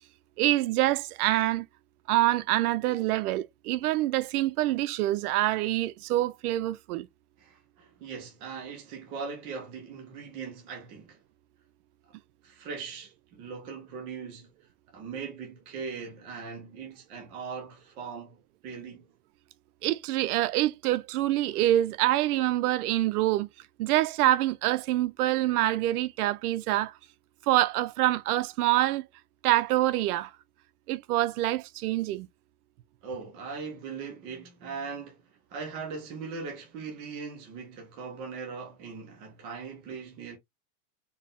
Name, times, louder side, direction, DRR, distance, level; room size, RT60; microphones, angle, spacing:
voice 1, 0.4-1.7 2.1-7.1 19.8-23.5 23.8-26.9 27.4-29.1 29.4-30.3 30.9-32.3, right 15 dB, 80° right, 0.5 m, -26 dB
voice 2, 7.4-11.2 12.4-14.5 14.9-18.4 18.6-19.0 33.0-35.2 35.5-40.4, right 5 dB, 15° right, 0.3 m, -40 dB
3.9 x 2.0 x 3.6 m
supercardioid pair, 160°, 45 cm